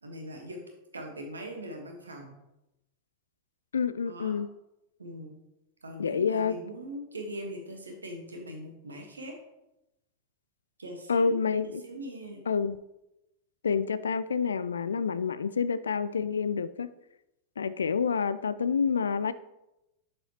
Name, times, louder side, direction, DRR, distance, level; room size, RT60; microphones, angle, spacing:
voice 1, 0.0-0.6 0.9-2.4 4.0-4.4 5.0-5.4 5.8-9.3 10.8-11.4 11.6-12.4, equal, 75° right, 2 dB, 1.3 m, -41 dB
voice 2, 3.7-4.5 6.0-6.6 11.1-11.8 12.5-12.8 13.6-16.9 17.6-19.3, left 6 dB, 70° left, 15 dB, 0.3 m, -28 dB
7.4 x 6.9 x 2.9 m, 0.91 s
figure-of-eight pair, 90°, 0 cm